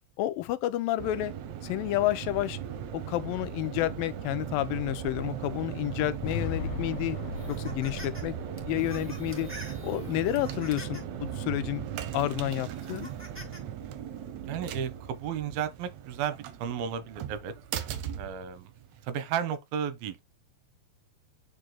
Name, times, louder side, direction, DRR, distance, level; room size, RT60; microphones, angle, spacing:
voice 1, 0.2-1.3 1.6-2.6 2.9-7.2 7.5-8.3 8.7-9.5 9.8-11.8 12.1-13.1, left 15 dB, 90° left, 2.4 m, -30 dB
sound 1, 1.0-19.1, right 9 dB, 70° right, 1.8 m, -38 dB
sound 2, 6.2-10.4, left 7 dB, 65° left, 2.1 m, -39 dB
sound 3, 7.3-8.2 8.6-11.2 11.8-11.9 12.7-13.6, equal, 5° right, 1.5 m, -47 dB
voice 2, 14.5-17.5 18.2-18.7 19.0-20.2, right 8 dB, 90° right, 2.9 m, -33 dB
8.6 x 5.0 x 2.2 m
omnidirectional pair, 4.1 m